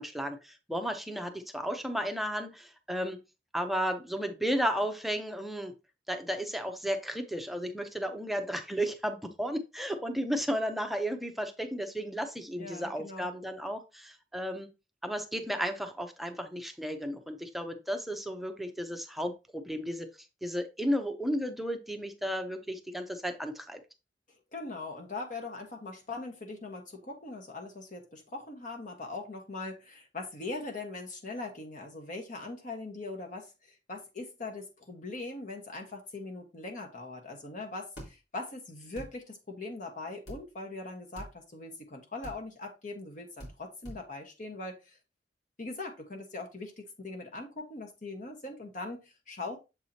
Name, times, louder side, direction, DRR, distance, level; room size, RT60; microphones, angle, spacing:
voice 1, 0.0-3.2 3.5-5.7 6.1-14.7 15.0-20.1 20.4-23.8, equal, ahead, 6 dB, 0.7 m, -33 dB
voice 2, 12.6-13.3 24.5-45.0 45.6-49.6, left 3 dB, 50° left, 2 dB, 1.3 m, -41 dB
sound 1, 38.0-38.1 38.9-39.1 40.3-40.4 41.1-41.3 42.2-42.4 43.4-43.5 43.8-44.0, right 1 dB, 70° left, 3.3 m, -43 dB
7.2 x 4.8 x 2.8 m, 0.27 s
head